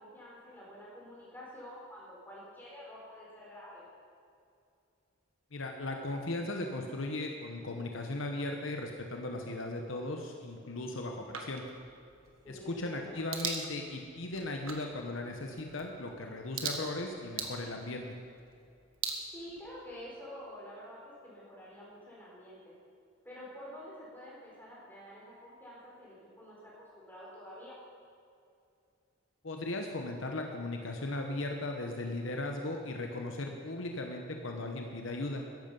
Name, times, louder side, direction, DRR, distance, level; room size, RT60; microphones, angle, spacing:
voice 1, 0.0-3.8 12.4-13.2 19.3-22.7 23.2-27.8, equal, 10° left, -6 dB, 4.2 m, -48 dB
voice 2, 5.5-11.6 12.5-18.2 29.4-35.4, left 2 dB, 65° left, 2 dB, 1.0 m, -37 dB
sound 1, 11.3-20.1, right 5 dB, 70° right, 1.5 m, -43 dB
14.5 x 11.0 x 5.5 m, 2.5 s
head